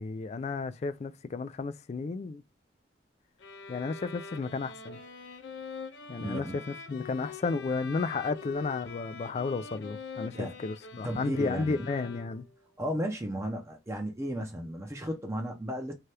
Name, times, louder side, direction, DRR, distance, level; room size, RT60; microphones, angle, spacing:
voice 1, 0.0-2.4 3.7-5.0 6.1-12.4, left 4 dB, 35° left, 0.3 m, -33 dB
sound 1, 3.4-12.6, left 5 dB, 80° left, 0.6 m, -44 dB
voice 2, 6.2-6.6 10.3-10.6 11.0-11.9 12.8-15.9, equal, 15° right, 0.6 m, -34 dB
2.7 x 2.3 x 3.3 m
head